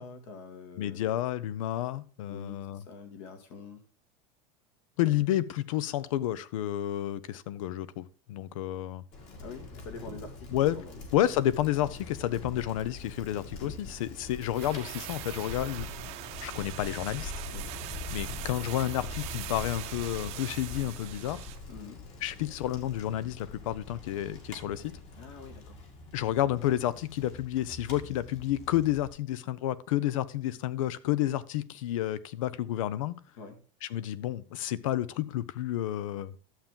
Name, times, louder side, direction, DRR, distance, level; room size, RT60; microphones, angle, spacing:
voice 1, 0.0-1.2 2.3-3.8 9.4-11.0 17.5-17.7 21.7-22.0 25.1-25.8 33.4-33.6, left 4 dB, 65° left, 2.2 m, -46 dB
voice 2, 0.8-2.8 5.0-9.0 10.5-10.8 11.1-15.9 16.4-17.3 18.1-21.5 22.2-24.9 26.1-33.2 33.8-36.3, left 13 dB, 90° left, 0.7 m, -30 dB
Bicycle, 9.1-29.1, left 3 dB, 45° left, 2.3 m, -43 dB
sound 1, 14.4-21.7 22.0-22.1, right 16 dB, 40° right, 0.7 m, -42 dB
11.5 x 7.4 x 3.7 m
supercardioid pair, 170°, 17 cm